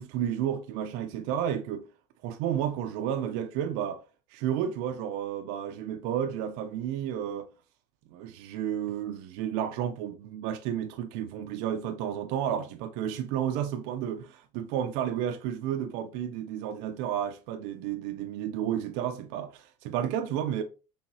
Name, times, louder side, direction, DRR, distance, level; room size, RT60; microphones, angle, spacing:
voice 1, 0.0-1.9 2.2-4.0 4.3-7.5 8.1-20.6, right 9 dB, 80° right, 0.5 m, -32 dB
4.7 x 3.4 x 2.7 m
cardioid pair, 155°, 11 cm